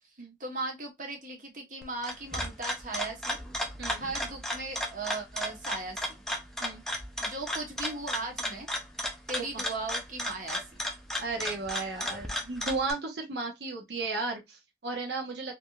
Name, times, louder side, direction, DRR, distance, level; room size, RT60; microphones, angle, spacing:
voice 1, 0.4-3.4 4.0-6.2 7.2-8.7 9.3-10.6, right 3 dB, 45° right, 1.0 m, -37 dB
sound 1, 1.8-12.9, equal, ahead, 0.5 m, -35 dB
voice 2, 11.2-15.5, right 3 dB, 70° right, 0.9 m, -34 dB
3.4 x 2.6 x 2.3 m
head